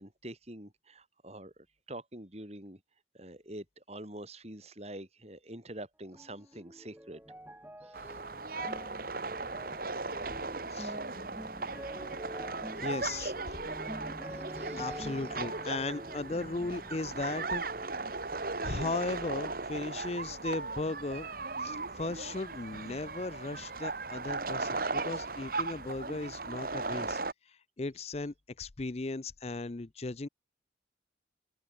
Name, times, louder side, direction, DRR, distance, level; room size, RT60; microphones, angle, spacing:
voice 1, 0.0-2.8 3.1-7.2 7.8-8.2 14.3-15.1, right 1 dB, 35° right, 5.1 m, -46 dB
sound 1, 6.1-19.6 19.9-20.9 21.5-21.6, equal, 10° right, 5.9 m, -47 dB
sound 2, 7.9-27.3, right 3 dB, 50° right, 2.0 m, -37 dB
voice 2, 12.8-13.6 14.8-17.6 18.6-21.3 21.6-27.2 27.8-30.3, left 3 dB, 35° left, 0.5 m, -37 dB
open air
head